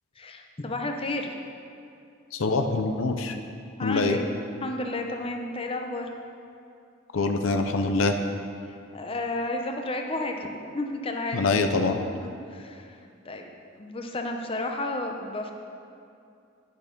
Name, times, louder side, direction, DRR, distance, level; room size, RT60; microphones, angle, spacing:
voice 1, 0.2-1.3 3.8-4.3 4.6-6.1 8.9-10.5 10.7-11.5 12.5-12.9 13.2-13.5 13.8-15.5, left 2 dB, 30° left, 3 dB, 0.7 m, -31 dB
voice 2, 2.3-3.4 3.8-4.2 7.1-8.2 11.3-12.0, left 3 dB, 90° left, 6 dB, 0.6 m, -24 dB
10.5 x 6.4 x 5.3 m, 2.5 s
head